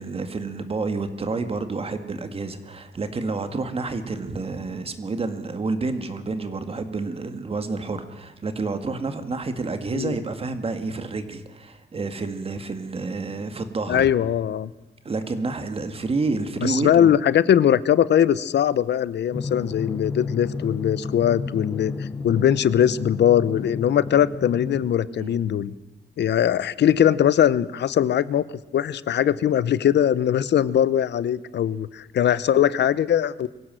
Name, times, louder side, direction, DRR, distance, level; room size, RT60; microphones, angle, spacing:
voice 1, 0.0-14.1 15.0-17.2 25.2-25.3, right 3 dB, 30° right, 9 dB, 1.9 m, -29 dB
voice 2, 13.9-14.7 16.6-25.7 26.2-28.4 28.7-33.5, left 10 dB, 70° left, 18 dB, 0.8 m, -21 dB
Drum, 19.3-24.9, left 4 dB, 20° left, 0.9 m, -32 dB
24.0 x 16.5 x 7.7 m, 1.1 s
wide cardioid pair, 150°, 19 cm